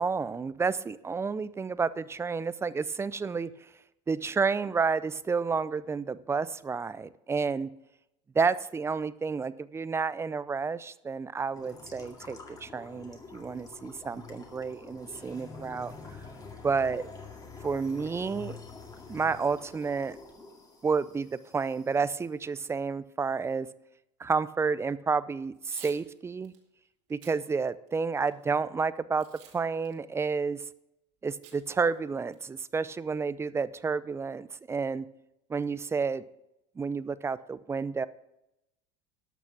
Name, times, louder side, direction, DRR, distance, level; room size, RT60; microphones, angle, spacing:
voice 1, 0.0-3.5 4.1-7.7 8.3-15.9 16.6-17.1 17.6-18.6 19.1-20.2 20.8-23.7 24.2-26.5 27.1-29.2 29.5-30.6 31.2-35.1 35.5-36.2 36.8-38.1, right 5 dB, 15° right, 16 dB, 0.5 m, -30 dB
sound 1, 11.5-22.0, left 4 dB, 25° left, 2.2 m, -47 dB
Packing tape duct tape / Tearing, 25.5-26.0 26.4-26.6 27.1-27.4 27.9-28.4 29.2-29.6 29.8-29.9 31.4-31.6 31.9-32.0 32.3-32.7, right 9 dB, 65° right, 2.5 m, -51 dB
12.5 x 6.1 x 5.9 m, 0.87 s
supercardioid pair, 100°, 15 cm